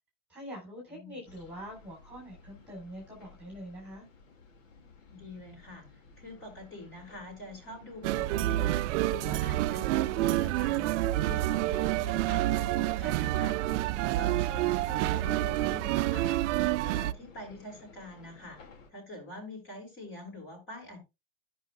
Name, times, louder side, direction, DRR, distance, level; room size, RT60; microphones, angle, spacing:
voice 1, 0.3-4.1, equal, 5° right, 4.0 m, -44 dB
voice 2, 0.9-1.2 5.1-13.6 14.1-16.4 16.8-18.6 18.9-21.0, left 1 dB, 35° left, 6.7 m, -45 dB
sound 1, 1.3-18.9, left 4 dB, 70° left, 2.3 m, -55 dB
sound 2, 8.0-17.1, right 15 dB, 65° right, 0.5 m, -28 dB
15.5 x 5.6 x 2.3 m
hypercardioid pair, 115°, 39 cm